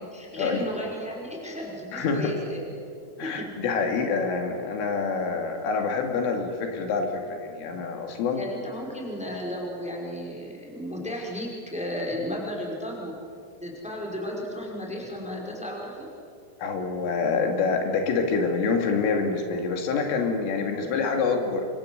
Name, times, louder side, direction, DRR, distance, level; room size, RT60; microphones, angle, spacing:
voice 1, 0.1-2.7 3.2-3.5 8.3-13.1 13.6-16.1 20.5-20.9, equal, ahead, -1 dB, 4.6 m, -34 dB
voice 2, 1.9-2.3 3.2-8.4 16.6-21.7, left 4 dB, 75° left, 4 dB, 4.8 m, -26 dB
29.0 x 25.0 x 8.1 m, 2.4 s
omnidirectional pair, 5.8 m